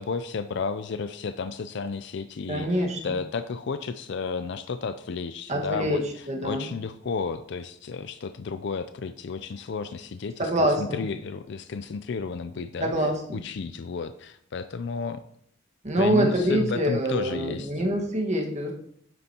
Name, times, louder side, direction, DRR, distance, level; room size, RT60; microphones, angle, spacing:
voice 1, 0.0-12.9 13.3-15.2 16.0-17.7, left 5 dB, 60° left, 10 dB, 0.4 m, -32 dB
voice 2, 2.5-3.2 5.5-6.7 10.4-11.0 12.8-13.4 15.8-18.7, right 1 dB, 35° right, 1 dB, 1.5 m, -25 dB
9.3 x 7.8 x 2.9 m, 0.67 s
head